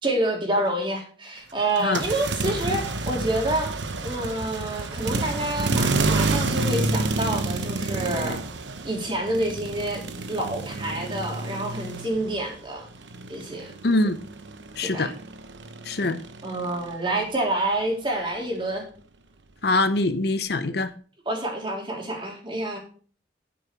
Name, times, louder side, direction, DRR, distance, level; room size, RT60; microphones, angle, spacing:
voice 1, 0.0-3.7 4.0-8.4 8.8-10.0 10.3-12.9 13.3-13.7 14.8-15.1 16.4-18.9 21.2-22.8, right 1 dB, 30° right, 0 dB, 3.2 m, -28 dB
sound 1, 1.8-12.6 12.8-17.0, right 3 dB, 90° right, 1.0 m, -29 dB
voice 2, 13.8-14.2 14.8-15.1 15.8-16.2 19.6-20.9, left 2 dB, 60° left, 11 dB, 0.7 m, -23 dB
9.2 x 8.7 x 4.6 m, 0.42 s
head